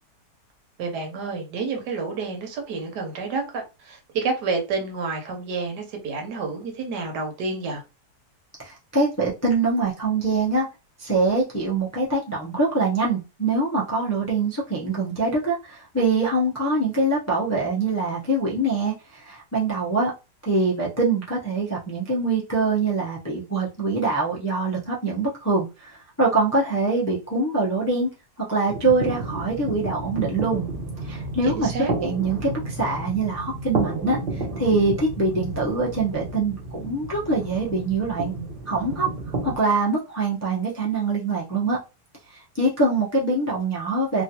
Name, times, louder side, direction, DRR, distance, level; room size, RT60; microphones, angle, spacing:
voice 1, 0.8-7.8 31.4-31.9, right 4 dB, 80° right, 1.4 m, -29 dB
voice 2, 8.6-10.7 11.0-20.1 20.4-28.1 28.5-30.7 31.1-31.7 32.0-38.3 38.7-39.1 39.4-41.8 42.5-44.2, right 3 dB, 20° left, 0.4 m, -24 dB
sound 1, 28.7-39.6, right 3 dB, 40° right, 0.9 m, -31 dB
3.0 x 2.5 x 2.8 m
omnidirectional pair, 1.8 m